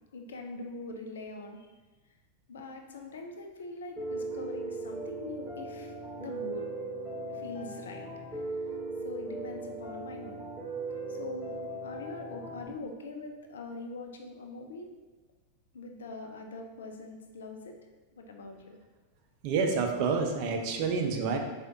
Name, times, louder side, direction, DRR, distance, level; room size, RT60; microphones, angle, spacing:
voice 1, 0.1-1.7 2.5-6.7 7.3-8.7 9.0-10.4 11.1-11.5 11.8-14.9 15.7-17.8 18.1-18.8, left 2 dB, 65° left, 3 dB, 0.4 m, -43 dB
Piano, 4.0-12.7, right 2 dB, ahead, 1.1 m, -38 dB
voice 2, 19.4-21.4, right 5 dB, 45° right, 3 dB, 0.5 m, -28 dB
4.7 x 2.4 x 2.7 m, 1.2 s
figure-of-eight pair, 90°, 0 cm